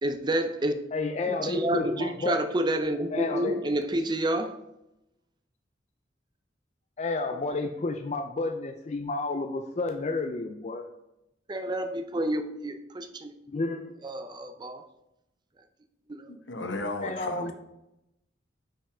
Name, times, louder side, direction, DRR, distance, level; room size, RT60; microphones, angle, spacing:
voice 1, 0.0-0.8 1.3-4.6 7.4-7.6 11.5-13.3 14.0-14.8 16.1-16.3, right 1 dB, 25° right, 0.4 m, -29 dB
voice 2, 0.9-2.4 3.1-3.6 7.0-10.8 13.5-13.9 17.0-17.5, left 3 dB, 35° left, 0.4 m, -31 dB
voice 3, 16.3-17.5, left 2 dB, 75° left, 0.9 m, -35 dB
5.6 x 5.4 x 4.9 m
head